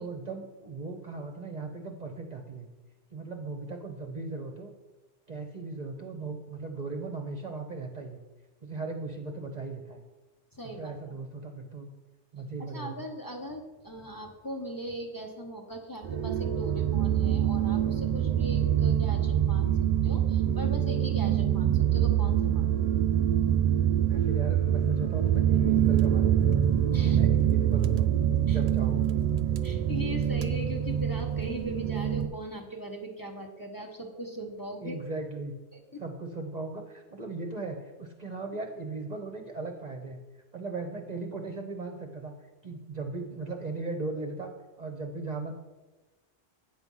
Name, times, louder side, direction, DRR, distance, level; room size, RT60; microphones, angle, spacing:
voice 1, 0.0-2.7 3.1-4.7 5.3-8.2 8.6-10.0 10.6-11.9 12.3-13.1 24.1-26.5 27.1-28.1 28.4-29.1 34.8-35.5 36.0-40.2 40.5-42.3 42.6-44.5 44.8-45.5, right 3 dB, 40° right, 3 dB, 0.8 m, -37 dB
voice 2, 10.5-10.9 12.6-19.7 20.0-23.0 26.9-27.2 28.5-28.6 29.6-35.0 35.7-36.0, equal, 20° left, 2 dB, 0.9 m, -39 dB
sound 1, 16.0-32.3, right 10 dB, 80° right, 0.3 m, -25 dB
8.9 x 6.1 x 5.5 m, 1.2 s
omnidirectional pair, 1.2 m